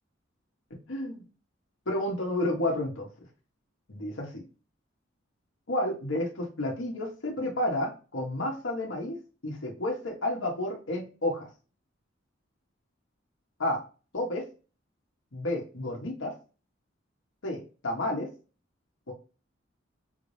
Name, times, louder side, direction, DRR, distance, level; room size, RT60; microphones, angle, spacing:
voice 1, 0.9-1.2 1.9-3.1 3.9-4.4 5.7-9.2 9.4-11.5 13.6-13.8 14.1-14.4 15.3-16.3 17.4-18.3 19.1-19.2, left 1 dB, 80° left, 0 dB, 1.2 m, -31 dB
5.7 x 2.7 x 3.3 m, 0.35 s
head